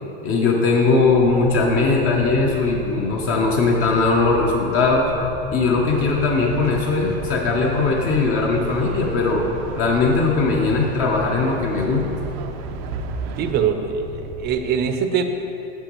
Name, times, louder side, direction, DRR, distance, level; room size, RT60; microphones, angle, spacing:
voice 1, 0.2-5.1 5.5-9.5 9.8-12.1, left 3 dB, 45° left, -1 dB, 0.9 m, -19 dB
sound 1, 0.9-14.6, left 1 dB, 10° left, 0.7 m, -37 dB
sound 2, 5.9-13.5, right 6 dB, 80° right, 0.6 m, -34 dB
voice 2, 13.4-15.2, right 7 dB, 35° right, 7 dB, 0.5 m, -23 dB
9.1 x 7.2 x 3.1 m, 3.0 s
supercardioid pair, 135°, 31 cm